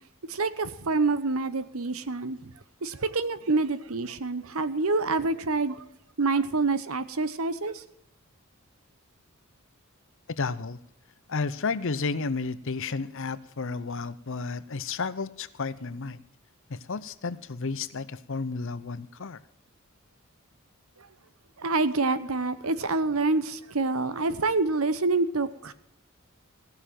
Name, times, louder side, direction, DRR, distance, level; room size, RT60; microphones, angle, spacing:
voice 1, 0.3-2.5 2.8-5.8 6.2-7.8 21.0-21.1 21.6-25.7, right 3 dB, 70° right, 1.0 m, -27 dB
voice 2, 10.4-10.8 11.3-16.2 16.7-19.4, left 4 dB, 60° left, 0.8 m, -32 dB
16.5 x 6.8 x 9.0 m
head